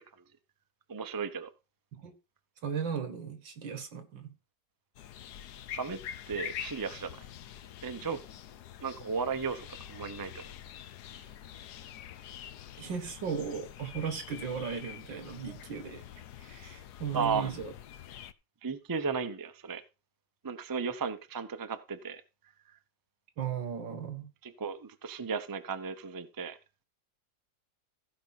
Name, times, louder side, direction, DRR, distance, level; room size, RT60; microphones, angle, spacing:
voice 1, 0.9-1.5 5.7-6.0 6.3-7.2 7.8-8.2 8.8-10.5 17.1-17.5 18.6-19.8 20.4-22.2 22.7-22.8 24.4-26.6, right 5 dB, 25° right, 0.4 m, -35 dB
voice 2, 2.6-4.3 12.8-16.1 16.4-17.7 23.4-24.3, right 6 dB, 90° right, 2.4 m, -36 dB
sound 1, 5.0-18.3, left 10 dB, 70° left, 1.2 m, -46 dB
15.5 x 5.3 x 5.8 m
omnidirectional pair, 2.0 m